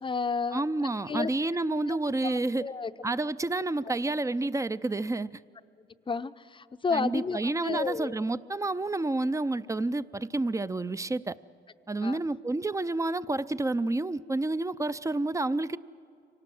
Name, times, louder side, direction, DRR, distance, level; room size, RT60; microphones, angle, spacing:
voice 1, 0.0-0.6 1.1-1.3 1.9-2.0 2.2-2.9 5.8-8.1 12.0-12.2, left 5 dB, 25° left, 12 dB, 0.7 m, -32 dB
voice 2, 0.5-2.6 3.0-5.3 6.9-11.4 11.9-15.8, right 2 dB, 15° right, 15 dB, 0.5 m, -29 dB
25.0 x 18.5 x 7.7 m, 2.6 s
cardioid pair, 90°, 20 cm